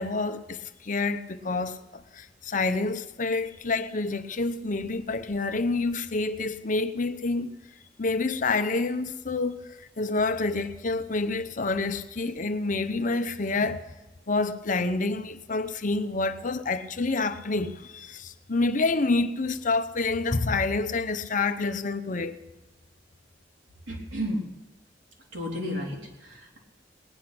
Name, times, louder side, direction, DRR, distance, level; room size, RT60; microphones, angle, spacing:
voice 1, 0.0-7.5 8.0-13.8 14.3-22.4, left 3 dB, 45° left, 0.8 m, -28 dB
voice 2, 23.9-24.4 25.3-26.6, equal, 90° right, 3.7 m, -32 dB
19.0 x 10.5 x 6.0 m
head